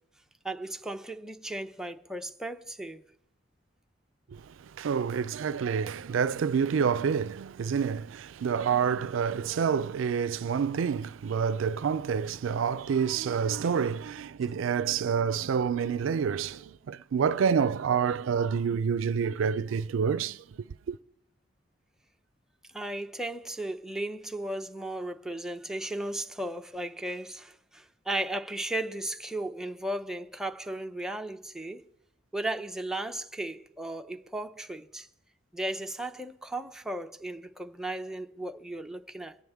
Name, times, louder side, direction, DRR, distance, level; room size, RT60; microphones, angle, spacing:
voice 1, 0.4-3.0 22.7-31.8 32.3-35.1 35.5-39.4, right 1 dB, 5° right, 0.6 m, -35 dB
voice 2, 4.8-20.4 20.9-21.0, right 6 dB, 90° right, 0.4 m, -28 dB
23.0 x 9.3 x 3.5 m
head